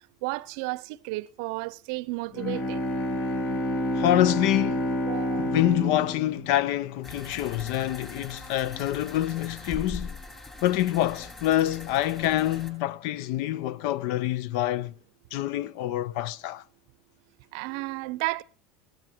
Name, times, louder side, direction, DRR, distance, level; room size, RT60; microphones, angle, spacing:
voice 1, 0.2-2.8 5.1-5.5 17.5-18.4, right 22 dB, 70° right, 0.6 m, -32 dB
Bowed string instrument, 2.3-7.4, left 1 dB, 45° left, 2.2 m, -29 dB
voice 2, 3.9-4.9 5.4-10.1 10.6-14.9 15.3-16.6, left 13 dB, 65° left, 0.6 m, -26 dB
sound 1, 7.0-12.7, left 2 dB, 20° left, 7.5 m, -42 dB
17.5 x 12.5 x 4.4 m
hypercardioid pair, 100°, 3 cm